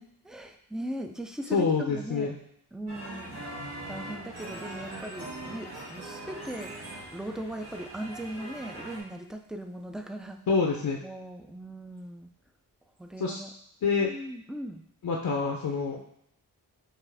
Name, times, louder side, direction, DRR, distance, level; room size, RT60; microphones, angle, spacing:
voice 1, 0.0-2.4 2.7-3.4 3.9-6.7 7.1-10.4 11.0-12.3 13.0-13.5 14.0-14.8, right 1 dB, ahead, 5 dB, 0.3 m, -39 dB
voice 2, 1.5-2.3 10.5-11.0 13.2-13.4 13.8-14.1 15.0-16.0, left 5 dB, 60° left, 0 dB, 0.6 m, -26 dB
sound 1, 2.9-9.0, right 1 dB, 70° right, 1.6 m, -41 dB
5.6 x 2.5 x 3.4 m, 0.73 s
wide cardioid pair, 75°, 41 cm